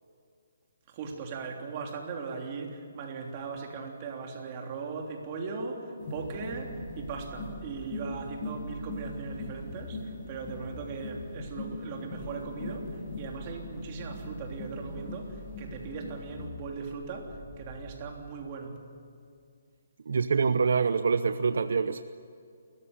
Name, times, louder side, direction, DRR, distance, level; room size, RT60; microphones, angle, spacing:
voice 1, 0.9-18.8, right 4 dB, 30° right, 1 dB, 3.3 m, -39 dB
sound 1, 6.0-16.5, left 2 dB, 35° left, 7.6 m, -41 dB
sound 2, 6.2-18.1, right 1 dB, 15° left, 7.4 m, -46 dB
voice 2, 20.1-22.0, right 5 dB, 70° right, 11 dB, 0.8 m, -25 dB
28.5 x 14.5 x 9.8 m, 2.4 s
hypercardioid pair, 165°, 0 cm